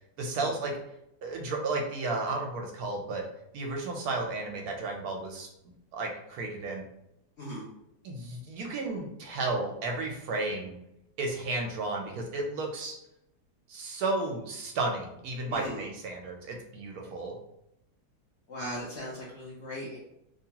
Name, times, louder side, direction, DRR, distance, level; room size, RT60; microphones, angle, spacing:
voice 1, 0.2-0.7 1.2-3.2 3.5-5.5 5.9-6.8 8.0-10.8 11.2-13.0 13.7-17.4, right 3 dB, 75° right, 1 dB, 1.0 m, -33 dB
voice 2, 7.4-7.7 15.5-15.9 18.5-20.0, equal, 60° left, -4 dB, 0.7 m, -38 dB
2.8 x 2.2 x 2.8 m, 0.82 s
omnidirectional pair, 1.7 m